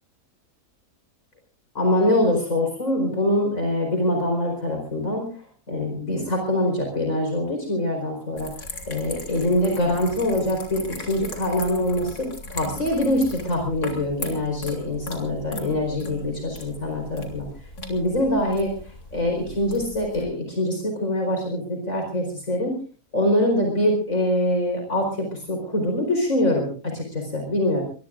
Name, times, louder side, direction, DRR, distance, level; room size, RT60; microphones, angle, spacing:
voice 1, 1.7-8.5 8.9-12.3 12.5-17.5 17.9-22.8 23.1-27.8, left 1 dB, 55° left, 2 dB, 5.0 m, -24 dB
sound 1, 8.4-20.2, left 2 dB, 80° left, 3.9 m, -38 dB
24.0 x 23.0 x 2.5 m, 0.38 s
omnidirectional pair, 1.6 m